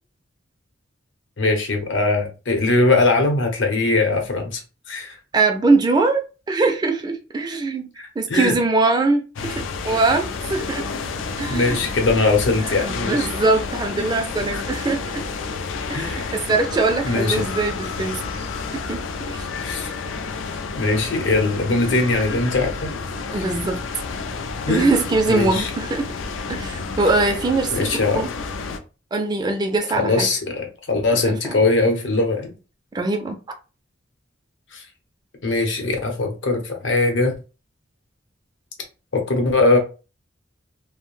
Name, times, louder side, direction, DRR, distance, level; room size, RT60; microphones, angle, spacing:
voice 1, 1.4-4.6 4.9-5.2 8.0-8.5 11.5-13.3 14.5-14.6 15.9-16.4 17.0-17.4 19.6-19.9 20.7-22.9 23.3-23.6 24.7-24.9 25.3-25.7 27.7-28.2 30.0-32.5 34.7-34.8 35.4-37.3 39.1-39.8, left 3 dB, 70° left, 0.8 m, -21 dB
voice 2, 5.3-6.2 6.5-7.9 8.2-10.8 11.4-11.8 12.7-15.2 15.9-18.2 18.7-19.5 23.3-23.8 24.7-26.1 26.5-27.9 28.1-28.3 29.1-30.3 31.4-31.6 32.9-33.4, right 3 dB, 20° right, 0.3 m, -22 dB
sound 1, 9.4-28.8, left 4 dB, 90° left, 0.4 m, -30 dB
2.5 x 2.1 x 3.1 m
head